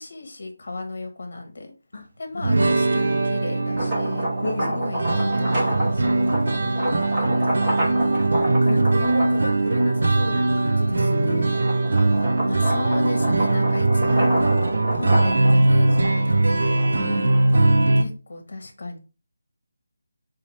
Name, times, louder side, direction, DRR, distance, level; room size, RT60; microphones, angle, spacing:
voice 1, 0.0-1.7 2.2-4.3 4.6-6.2 11.9-12.0 12.4-14.6 14.9-16.9 17.9-19.0, left 2 dB, 50° left, 5 dB, 0.9 m, -35 dB
sound 1, 2.4-18.0, right 2 dB, 65° right, 0.5 m, -21 dB
sound 2, 3.6-10.2 10.7-17.9, right 1 dB, 20° right, 1.0 m, -29 dB
voice 2, 4.4-4.9 8.4-11.7 17.0-17.5, left 1 dB, 75° left, 3 dB, 0.7 m, -31 dB
4.2 x 2.3 x 3.1 m, 0.34 s
figure-of-eight pair, 170°, 0 cm